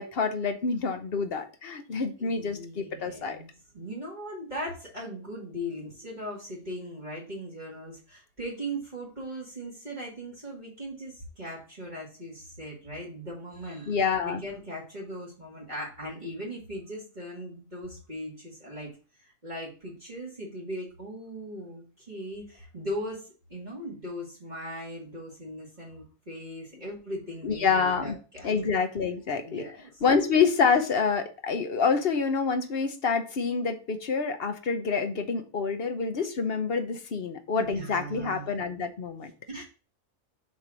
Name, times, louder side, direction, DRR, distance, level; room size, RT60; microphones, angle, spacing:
voice 1, 0.0-3.4 13.9-14.4 27.4-28.2 28.4-29.7 30.0-39.3, left 5 dB, 50° left, 0.9 m, -27 dB
voice 2, 2.2-3.5 3.7-14.0 14.2-18.9 19.2-28.5 29.4-29.9 37.6-38.5 39.5-39.6, equal, 30° right, 2.2 m, -39 dB
6.7 x 3.6 x 6.0 m
omnidirectional pair, 1.6 m